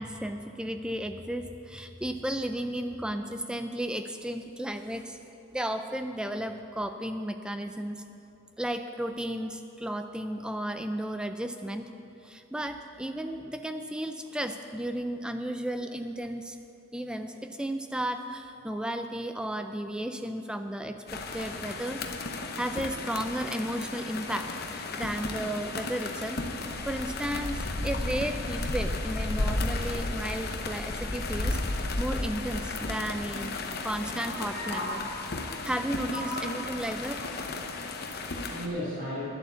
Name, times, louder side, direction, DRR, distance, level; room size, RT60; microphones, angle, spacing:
voice 1, 0.0-5.2 5.5-8.0 8.6-11.9 12.2-16.6 16.9-22.0 22.5-26.4 26.9-33.6 33.8-35.0 35.6-37.3, right 1 dB, 5° right, 7 dB, 0.3 m, -34 dB
sound 1, 21.1-38.7, left 2 dB, 45° left, 0.8 m, -34 dB
voice 2, 34.2-35.7 36.1-36.5 37.2-37.3 37.7-39.3, left 1 dB, 50° right, -8 dB, 2.7 m, -37 dB
11.0 x 7.9 x 7.0 m, 2.8 s
head